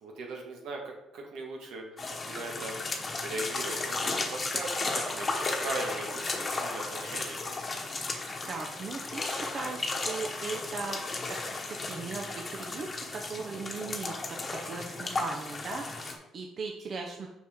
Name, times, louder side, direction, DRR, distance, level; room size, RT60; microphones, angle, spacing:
voice 1, 0.0-1.8 2.3-2.8 3.2-5.3 5.6-7.4, right 2 dB, 75° right, 0 dB, 1.7 m, -39 dB
sound 1, 2.0-16.2, left 3 dB, 30° left, 1.1 m, -34 dB
voice 2, 8.5-11.4 11.7-14.1 14.4-17.3, right 4 dB, 45° right, 1 dB, 0.8 m, -38 dB
6.2 x 5.6 x 3.6 m, 0.94 s
cardioid pair, 100°, 0 cm